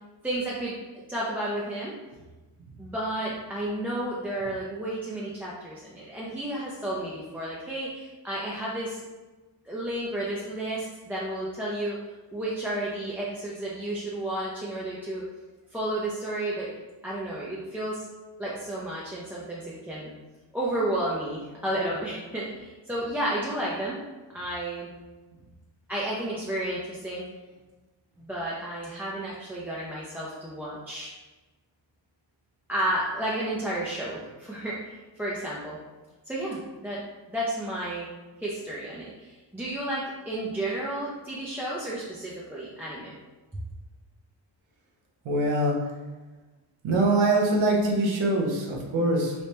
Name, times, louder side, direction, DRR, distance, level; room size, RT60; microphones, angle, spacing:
voice 1, 0.2-0.8 1.1-1.9 2.8-9.0 9.6-12.0 12.3-15.3 15.7-16.7 17.0-18.1 18.4-20.1 20.5-24.0 24.3-24.9 25.9-27.2 28.2-31.1 32.7-35.8 36.3-37.0 37.3-38.1 38.4-43.1, right 1 dB, 5° right, -7 dB, 0.5 m, -32 dB
voice 2, 45.2-45.9 46.8-49.3, right 2 dB, 85° right, -1 dB, 0.9 m, -23 dB
3.3 x 2.7 x 3.1 m, 1.2 s
wide cardioid pair, 105°, 46 cm